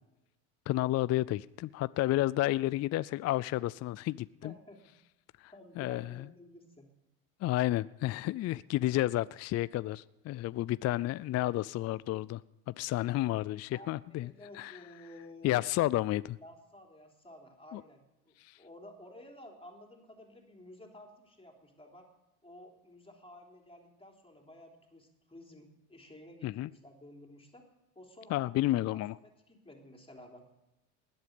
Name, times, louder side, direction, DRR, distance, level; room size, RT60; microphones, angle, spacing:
voice 1, 0.7-4.5 5.4-6.1 7.4-12.4 12.7-14.8 15.4-16.4 17.7-17.8 18.4-18.6 26.4-26.7 28.3-29.1, left 16 dB, 40° left, 17 dB, 0.4 m, -31 dB
voice 2, 4.4-4.8 5.5-6.9 13.7-15.6 16.4-22.1 22.4-27.7 27.9-30.4, left 1 dB, 15° left, 1 dB, 3.4 m, -53 dB
20.0 x 8.1 x 5.2 m, 0.94 s
hypercardioid pair, 80°, 43 cm